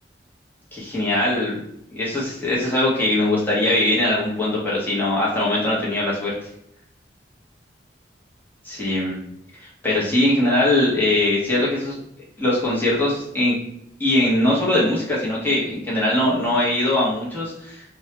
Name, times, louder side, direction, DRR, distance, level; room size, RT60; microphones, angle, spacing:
voice 1, 0.7-1.6 1.9-6.3 8.6-9.2 9.8-12.0 12.4-13.6 14.0-17.8, left 1 dB, 10° left, -7 dB, 0.7 m, -21 dB
2.3 x 2.1 x 2.8 m, 0.75 s
head